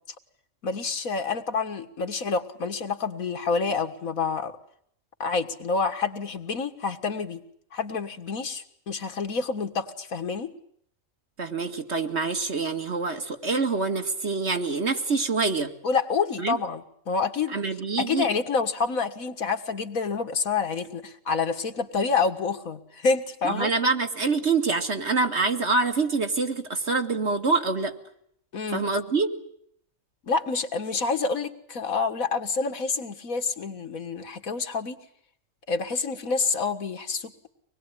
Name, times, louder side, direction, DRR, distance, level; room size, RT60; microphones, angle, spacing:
voice 1, 0.6-4.5 5.2-7.4 7.7-10.5 15.8-17.5 18.0-23.7 28.5-28.9 30.2-35.0 35.7-37.3, left 4 dB, 90° left, 7 dB, 2.1 m, -28 dB
voice 2, 11.4-15.7 16.4-16.6 17.5-18.3 23.4-27.9 28.7-29.3, right 4 dB, 55° right, 5 dB, 2.3 m, -25 dB
25.0 x 20.5 x 9.9 m, 0.68 s
omnidirectional pair, 1.4 m